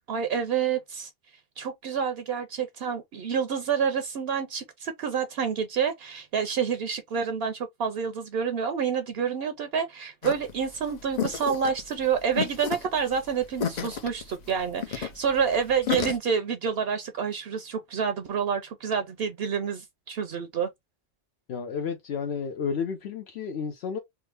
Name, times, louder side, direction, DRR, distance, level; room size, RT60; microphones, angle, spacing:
voice 1, 0.1-1.1 1.6-20.7, right 7 dB, 70° right, 0.8 m, -28 dB
sound 1, 10.2-16.2, left 8 dB, 50° left, 0.6 m, -32 dB
voice 2, 21.5-24.0, left 6 dB, 75° left, 0.9 m, -31 dB
3.6 x 2.0 x 3.2 m
omnidirectional pair, 1.1 m